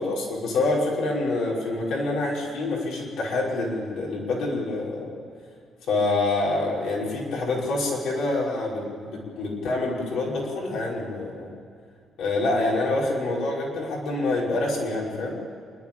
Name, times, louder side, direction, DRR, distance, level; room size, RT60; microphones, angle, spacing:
voice 1, 0.0-5.1 5.9-11.5 12.2-15.4, left 2 dB, 80° left, -3 dB, 5.5 m, -26 dB
27.5 x 11.5 x 9.0 m, 2.3 s
cardioid pair, 90°, 0 cm